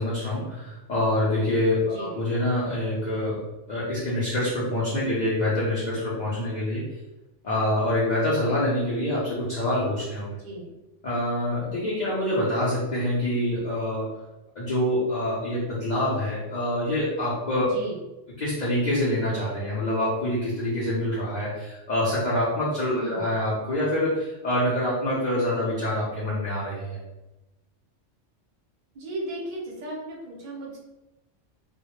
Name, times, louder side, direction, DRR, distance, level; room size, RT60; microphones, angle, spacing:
voice 1, 0.0-6.9 7.4-10.4 11.0-14.2 14.6-17.7 18.4-27.0, left 1 dB, 50° left, -8 dB, 0.5 m, -26 dB
voice 2, 1.8-2.2 10.4-10.7 17.7-18.0 22.9-23.3 28.9-30.8, right 1 dB, 45° right, -3 dB, 0.6 m, -36 dB
2.1 x 2.0 x 2.9 m, 0.99 s
omnidirectional pair, 1.3 m